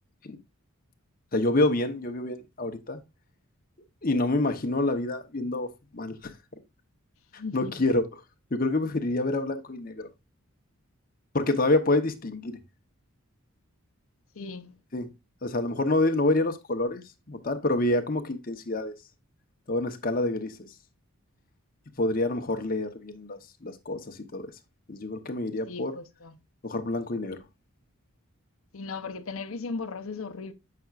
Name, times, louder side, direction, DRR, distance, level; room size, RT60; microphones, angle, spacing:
voice 1, 1.3-3.0 4.0-5.7 5.9-6.3 7.5-8.0 8.5-10.1 11.3-12.6 14.9-15.1 15.4-18.9 19.7-20.6 22.0-24.5 24.9-25.9 26.6-27.4, left 2 dB, 40° left, 0.9 m, -27 dB
voice 2, 7.4-7.7 14.4-14.8 25.7-26.4 28.7-30.5, left 4 dB, 70° left, 0.7 m, -37 dB
7.7 x 5.8 x 2.4 m
head